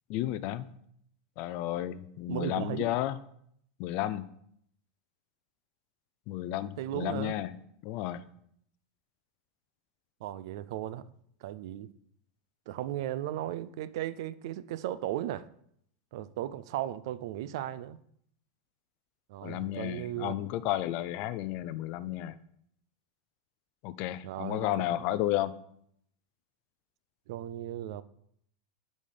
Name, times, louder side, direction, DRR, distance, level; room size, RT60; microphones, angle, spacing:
voice 1, 0.1-0.7 1.4-3.2 3.8-4.2 6.3-7.5 7.8-8.2 19.4-22.3 23.8-25.5, left 13 dB, 45° left, 15 dB, 0.4 m, -32 dB
voice 2, 2.3-2.9 6.8-7.4 10.2-11.0 11.4-11.9 12.7-15.5 16.1-18.0 19.3-20.4 24.2-25.0 27.3-28.0, right 12 dB, 60° right, 16 dB, 0.4 m, -36 dB
8.6 x 4.2 x 5.0 m, 0.70 s
supercardioid pair, 155°, 3 cm